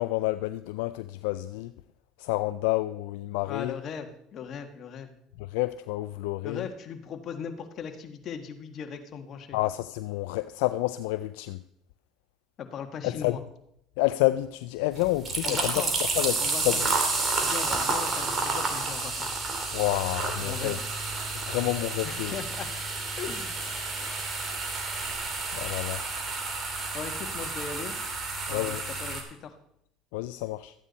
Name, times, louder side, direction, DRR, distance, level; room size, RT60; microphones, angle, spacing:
voice 1, 0.0-1.7 2.2-3.8 5.5-6.7 9.5-11.6 13.0-13.4 14.0-15.8 16.2-16.9 19.7-20.8 21.5-22.3 25.5-26.0 28.5-28.8 30.1-30.7, left 18 dB, 80° left, 0.4 m, -29 dB
voice 2, 3.5-5.1 6.4-9.6 12.6-13.4 15.4-15.9 16.4-16.8 17.4-19.3 20.4-20.8 22.0-22.7 23.2-23.6 26.9-27.9 28.5-29.6, left 7 dB, 50° left, 1.5 m, -38 dB
sound 1, 14.9-29.2, right 3 dB, 35° right, 2.7 m, -30 dB
13.0 x 8.9 x 4.1 m
supercardioid pair, 85°, 0 cm